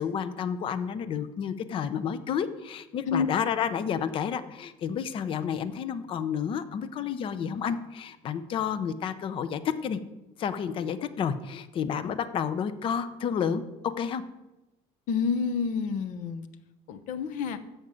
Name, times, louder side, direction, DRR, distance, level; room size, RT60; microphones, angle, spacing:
voice 1, 0.0-10.0 10.4-14.2, left 7 dB, 35° left, 12 dB, 0.7 m, -30 dB
voice 2, 15.1-16.5 16.9-17.6, left 5 dB, 60° left, 10 dB, 1.0 m, -28 dB
13.5 x 5.2 x 7.5 m, 1.0 s
cardioid pair, 165°, 15 cm